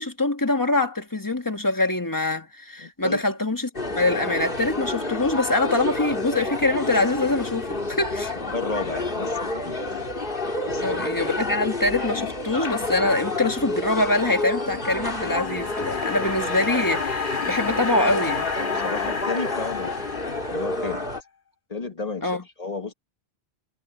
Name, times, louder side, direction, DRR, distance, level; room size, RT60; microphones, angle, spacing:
voice 1, 0.0-3.7 3.9-8.3 10.8-18.5 22.2-22.4, left 2 dB, 20° left, 1.7 m, -24 dB
voice 2, 2.8-3.2 8.4-9.8 10.6-11.0 17.5-17.6 18.7-20.2 20.5-21.0 21.7-22.9, left 3 dB, 35° left, 1.4 m, -33 dB
sound 1, 3.7-21.2, left 2 dB, 55° left, 2.8 m, -29 dB
sound 2, 14.5-20.9, left 5 dB, 85° left, 2.2 m, -31 dB
omnidirectional pair, 1.1 m